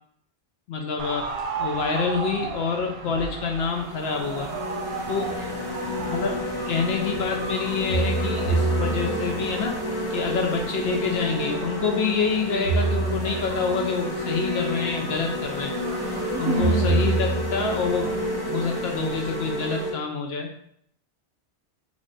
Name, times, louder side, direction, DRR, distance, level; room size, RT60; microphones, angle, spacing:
voice 1, 0.7-1.2 1.6-4.5 5.1-5.3 6.1-6.3 6.7-9.8 10.1-15.7 16.4-18.1 18.5-20.5, left 5 dB, 70° left, 2 dB, 0.8 m, -27 dB
sound 1, 1.0-19.9, right 5 dB, 70° right, 0.8 m, -37 dB
sound 2, 3.0-3.2 3.7-19.9, left 1 dB, 25° left, 0.7 m, -30 dB
voice 2, 5.2-6.0 16.3-17.1, right 3 dB, 20° right, -7 dB, 1.3 m, -30 dB
sound 3, 7.9-9.5 12.6-13.7 16.6-17.9, right 4 dB, 90° left, 1.4 m, -25 dB
3.2 x 3.2 x 3.9 m, 0.69 s
omnidirectional pair, 1.1 m